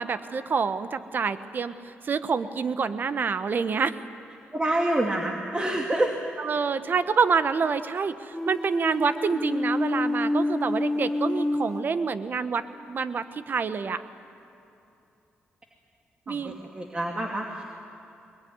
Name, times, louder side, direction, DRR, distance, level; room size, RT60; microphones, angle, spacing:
voice 1, 0.0-1.7 2.0-3.9 6.4-12.6 12.9-14.0 16.3-16.5, right 5 dB, 50° right, 12 dB, 1.1 m, -27 dB
voice 2, 4.5-6.1 16.3-17.6, right 1 dB, 25° right, 0 dB, 2.4 m, -27 dB
sound 1, 8.3-12.6, left 1 dB, 10° left, 0.7 m, -28 dB
22.0 x 21.5 x 9.6 m, 2.8 s
cardioid pair, 80°, 4 cm